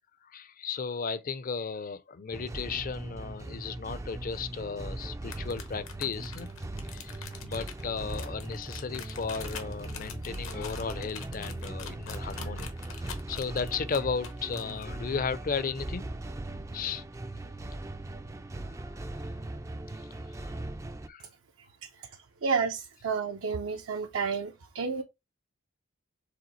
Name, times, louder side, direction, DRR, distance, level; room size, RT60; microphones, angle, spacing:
voice 1, 0.2-6.5 6.9-7.2 7.4-16.1 16.7-17.0 18.8-19.3 20.0-20.1 20.4-20.5 21.1-21.3, left 5 dB, 45° left, 0.5 m, -35 dB
sound 1, 2.3-21.1, right 2 dB, 15° right, 0.3 m, -39 dB
sound 2, 5.2-14.8, left 7 dB, 75° left, 1.0 m, -44 dB
voice 2, 22.4-25.0, right 5 dB, 75° right, 0.6 m, -31 dB
5.0 x 3.5 x 3.1 m
head